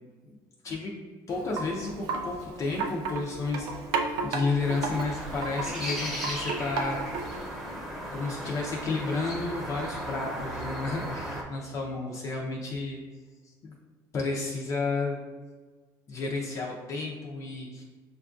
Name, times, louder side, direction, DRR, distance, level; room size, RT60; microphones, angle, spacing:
voice 1, 0.0-0.4 0.6-0.9 1.3-7.3 7.7-7.8 8.1-13.0 13.4-13.7 14.1-15.2 16.1-17.8, left 3 dB, 40° left, -1 dB, 0.5 m, -32 dB
Wind chime, 1.3-7.5, right 4 dB, 75° right, 0.5 m, -34 dB
sound 1, 4.6-11.4, equal, ahead, 0.8 m, -36 dB
6.5 x 2.3 x 2.5 m, 1.3 s
cardioid pair, 130°, 8 cm